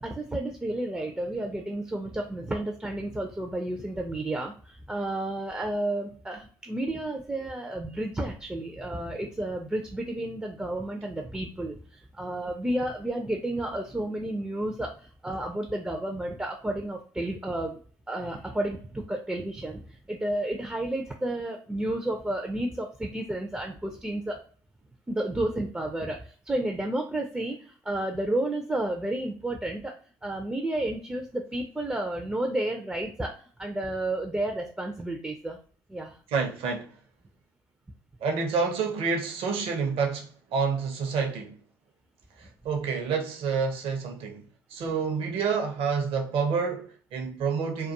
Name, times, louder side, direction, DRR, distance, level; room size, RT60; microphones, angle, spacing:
voice 1, 0.0-11.8 12.2-17.8 18.1-24.4 25.1-29.9 30.2-35.6 35.9-36.1, right 1 dB, 10° right, 0.4 m, -31 dB
voice 2, 36.3-36.9 38.2-41.6 42.4-44.4 44.7-47.9, right 5 dB, 55° right, 0.7 m, -28 dB
2.2 x 2.2 x 2.7 m
figure-of-eight pair, 55°, 11 cm